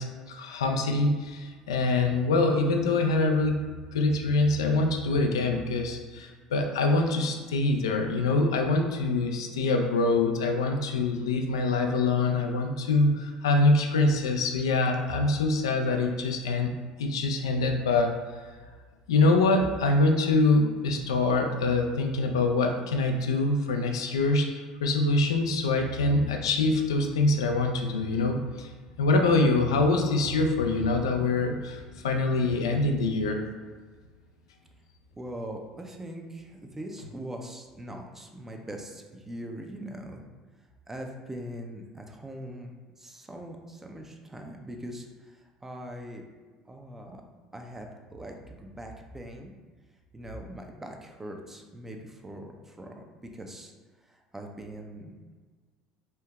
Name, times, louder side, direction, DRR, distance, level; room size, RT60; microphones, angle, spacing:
voice 1, 0.0-3.6 3.9-16.7 17.0-18.2 19.1-28.7 29.0-33.4, left 2 dB, 80° left, 3 dB, 0.3 m, -25 dB
voice 2, 35.1-40.2 40.9-42.7 43.0-46.2 46.7-47.2 47.5-49.5 50.1-53.0 53.3-53.7 54.1-55.1, right 1 dB, 15° right, 3 dB, 0.6 m, -41 dB
4.4 x 2.7 x 2.3 m, 1.5 s
hypercardioid pair, 70°, 3 cm